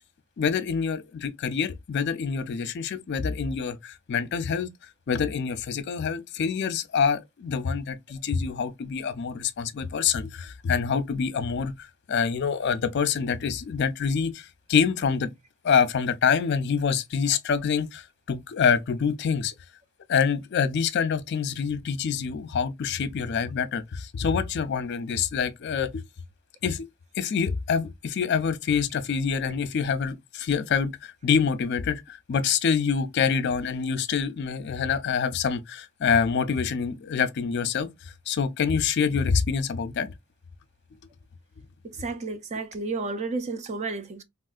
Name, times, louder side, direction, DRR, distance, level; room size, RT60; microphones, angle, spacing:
voice 1, 0.4-4.7 5.1-15.3 15.6-19.5 20.1-26.0 26.6-26.8 27.1-40.1, left 6 dB, 50° left, 0.4 m, -26 dB
voice 2, 41.8-44.2, right 3 dB, 30° right, 0.4 m, -32 dB
3.5 x 2.4 x 2.3 m
head